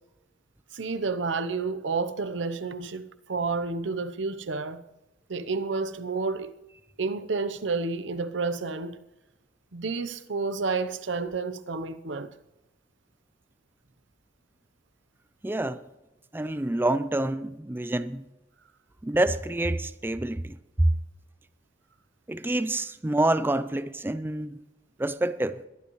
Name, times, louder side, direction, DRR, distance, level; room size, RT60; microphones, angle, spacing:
voice 1, 0.7-4.8 5.3-6.5 7.0-9.0 9.7-12.3, right 4 dB, 80° right, 0.8 m, -30 dB
voice 2, 15.4-15.8 16.3-18.2 19.0-20.9 22.3-24.6 25.0-25.6, right 1 dB, 10° right, 0.4 m, -27 dB
21.5 x 11.0 x 3.1 m
head